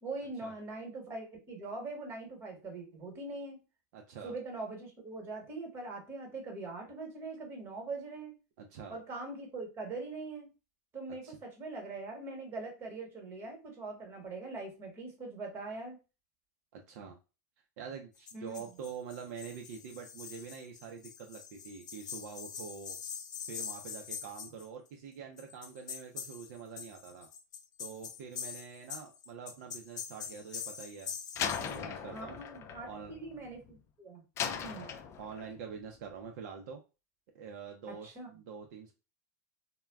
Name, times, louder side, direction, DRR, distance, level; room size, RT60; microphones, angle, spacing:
voice 1, 0.0-3.6 4.2-8.3 8.9-10.5 10.9-16.0 18.3-18.7 32.1-34.2 34.6-34.9 37.9-38.3, right 3 dB, 25° right, 2 dB, 1.2 m, -42 dB
voice 2, 3.9-4.3 8.6-9.0 11.2-11.4 16.7-17.2 17.8-23.0 23.5-27.3 27.8-32.4 32.8-33.2 34.7-36.8 37.3-38.9, right 6 dB, 65° right, 2 dB, 0.5 m, -46 dB
sound 1, 18.3-24.7 25.4-31.8, left 7 dB, 85° left, 0.5 m, -44 dB
Slam, 31.4-33.8 34.4-35.6, left 7 dB, 30° left, 0.3 m, -38 dB
2.2 x 2.1 x 3.4 m, 0.30 s
supercardioid pair, 125°, 9 cm